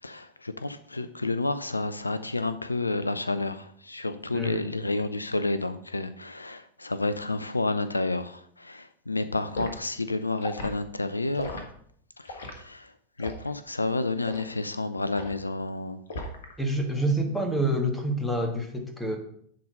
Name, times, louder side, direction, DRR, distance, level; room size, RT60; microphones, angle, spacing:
voice 1, 0.0-11.7 12.2-16.0, left 2 dB, 80° left, 12 dB, 0.4 m, -30 dB
voice 2, 4.3-4.6 16.6-19.2, right 1 dB, 5° left, 4 dB, 1.6 m, -27 dB
Liquid, 9.5-9.8 10.4-10.7 11.3-11.6 12.3-12.6 13.2-13.5 14.2-14.5 15.1-15.4 16.1-16.5 16.9-17.1, left 2 dB, 60° left, 1.5 m, -36 dB
10.5 x 3.9 x 5.3 m, 0.65 s
figure-of-eight pair, 90°, 0 cm